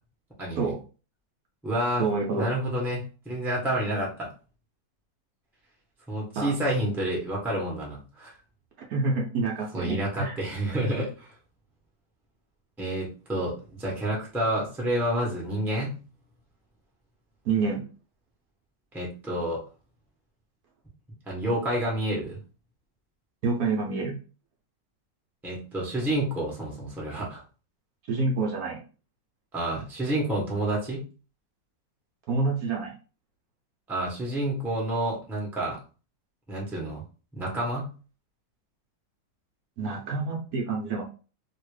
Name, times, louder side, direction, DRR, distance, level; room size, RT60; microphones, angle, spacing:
voice 1, 0.4-0.7 1.6-2.0 2.4-4.3 6.1-8.3 9.7-11.3 12.8-16.0 18.9-19.6 21.3-22.4 25.4-27.4 29.5-31.0 33.9-35.8 36.5-37.0 37.3-37.9, right 1 dB, ahead, -4 dB, 0.8 m, -29 dB
voice 2, 2.0-2.5 6.4-6.5 8.9-10.4 17.4-17.9 23.4-24.2 28.1-28.8 32.3-32.9 39.8-41.0, right 3 dB, 65° right, -1 dB, 1.0 m, -27 dB
2.9 x 2.8 x 3.1 m, 0.35 s
omnidirectional pair, 1.9 m